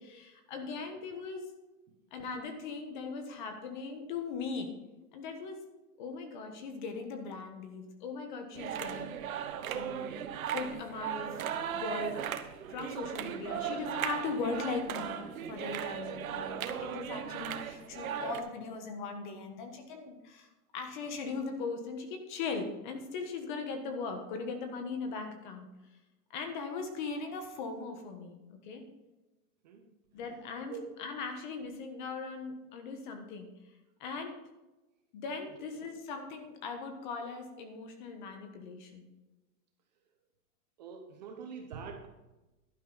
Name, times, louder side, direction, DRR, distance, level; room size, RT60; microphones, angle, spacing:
voice 1, 0.0-1.5 2.1-4.7 5.1-5.6 6.0-9.1 9.7-10.2 10.5-11.5 11.7-12.3 12.7-15.2 15.5-25.7 26.3-28.8 30.1-33.5 34.0-34.3 35.1-39.1, left 4 dB, 30° left, 6 dB, 1.4 m, -39 dB
sound 1, 8.5-18.4, right 9 dB, 60° right, 1.1 m, -37 dB
voice 2, 40.8-42.1, right 6 dB, 25° right, 4 dB, 0.8 m, -44 dB
11.5 x 10.0 x 4.0 m, 1.1 s
supercardioid pair, 175°, 48 cm